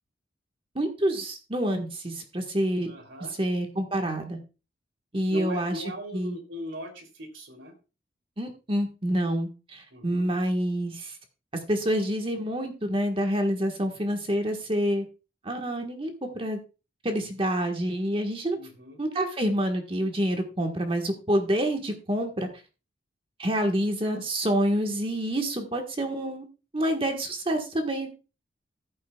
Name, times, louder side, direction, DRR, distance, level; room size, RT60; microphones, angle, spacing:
voice 1, 0.7-2.9 3.4-4.4 5.1-5.8 6.1-6.4 8.4-11.2 11.7-15.0 15.4-16.6 17.0-18.6 19.0-22.5 23.4-26.5 26.7-28.1, equal, 30° right, 4 dB, 1.4 m, -27 dB
voice 2, 2.9-3.3 5.3-7.7 9.9-10.2 18.6-19.0, equal, 90° right, 4 dB, 3.1 m, -39 dB
15.0 x 8.5 x 2.3 m, 0.31 s
head